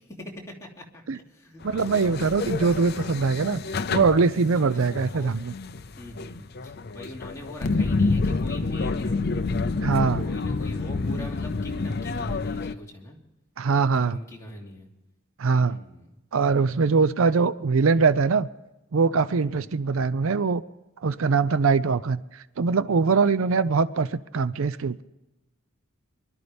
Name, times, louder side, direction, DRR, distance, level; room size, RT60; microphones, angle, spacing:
voice 1, 0.0-2.2 4.5-5.3 6.0-9.2 10.2-13.2 13.8-14.9 15.7-16.2 19.5-19.8, left 1 dB, 15° left, -3 dB, 2.8 m, -42 dB
sound 1, 1.6-12.7, left 3 dB, 50° left, 0.6 m, -28 dB
voice 2, 1.6-3.6 3.9-5.5 9.8-10.2 13.6-14.2 15.4-15.8 16.3-18.5 18.9-20.6 21.0-25.0, right 4 dB, 70° right, 16 dB, 0.5 m, -22 dB
24.5 x 12.5 x 3.5 m, 1.0 s
head